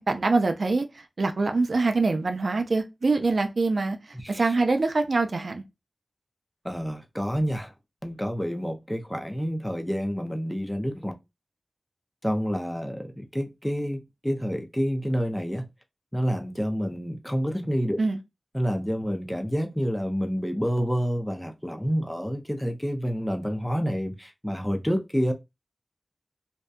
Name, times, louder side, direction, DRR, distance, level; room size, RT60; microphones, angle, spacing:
voice 1, 0.0-4.0 4.3-5.6 18.0-18.2, right 3 dB, 70° right, 0.4 m, -24 dB
voice 2, 4.1-4.5 6.6-7.7 8.0-11.1 12.2-15.6 16.1-18.0 18.5-25.3, equal, 5° left, 0.4 m, -28 dB
2.6 x 2.2 x 2.2 m
wide cardioid pair, 75°, 0 cm